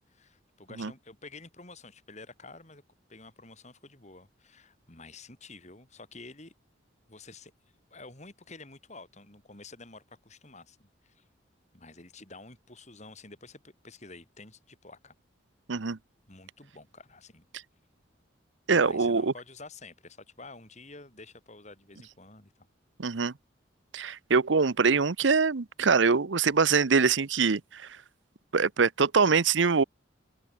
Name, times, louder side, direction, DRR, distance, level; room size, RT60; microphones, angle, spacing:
voice 1, 0.0-2.8 3.1-6.5 7.1-7.5 7.9-11.3 11.7-15.1 16.3-17.5 18.7-22.7, left 3 dB, 35° left, 4.7 m, -49 dB
voice 2, 18.7-19.3 23.0-23.3 23.9-27.9 28.5-29.8, right 5 dB, 75° right, 0.8 m, -24 dB
open air
head